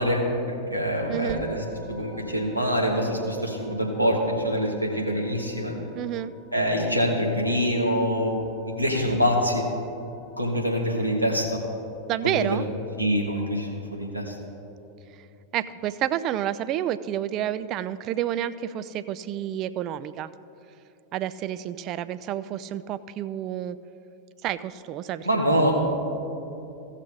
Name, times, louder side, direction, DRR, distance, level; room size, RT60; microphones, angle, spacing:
voice 1, 0.0-5.7 6.5-9.6 10.4-11.6 12.2-12.6 13.0-14.3 25.2-25.7, equal, 90° right, -1 dB, 1.5 m, -25 dB
voice 2, 1.1-1.4 6.0-6.3 12.1-12.6 15.5-20.3 21.1-23.8 24.4-25.7, right 11 dB, 35° right, 15 dB, 0.3 m, -29 dB
Musical instrument, 1.3-10.8, equal, 5° right, 1.0 m, -45 dB
16.0 x 6.4 x 3.8 m, 2.8 s
figure-of-eight pair, 90°, 0 cm